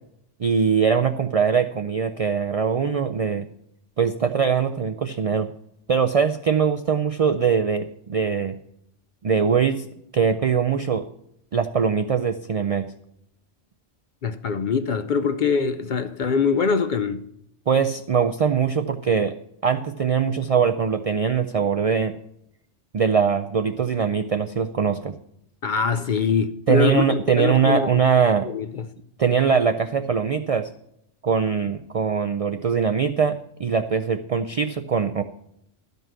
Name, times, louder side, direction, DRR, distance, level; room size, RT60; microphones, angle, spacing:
voice 1, 0.4-3.5 4.0-5.5 5.9-8.5 9.2-9.9 10.1-11.0 11.5-12.9 17.7-19.3 19.6-22.1 22.9-25.1 26.7-28.5 29.2-30.7 31.2-35.2, right 6 dB, 70° right, 0.3 m, -22 dB
voice 2, 14.2-17.3 25.6-28.0 28.4-28.9, left 6 dB, 55° left, 0.6 m, -23 dB
12.5 x 5.3 x 7.5 m
omnidirectional pair, 1.2 m